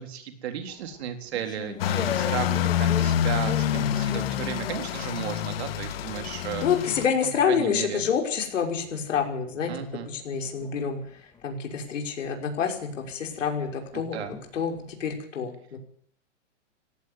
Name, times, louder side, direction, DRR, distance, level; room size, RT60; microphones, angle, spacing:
voice 1, 0.0-6.6 7.2-8.0 9.7-10.1 13.9-14.3, right 9 dB, 55° right, 7 dB, 4.0 m, -34 dB
sound 1, 0.7-5.9 6.2-15.1, left 6 dB, 10° left, 2.1 m, -42 dB
sound 2, 1.8-7.1, left 11 dB, 50° left, 1.7 m, -27 dB
voice 2, 6.6-14.2 14.5-15.8, left 7 dB, 75° left, 3 dB, 5.8 m, -28 dB
17.5 x 15.5 x 9.7 m, 0.63 s
hypercardioid pair, 155°, 37 cm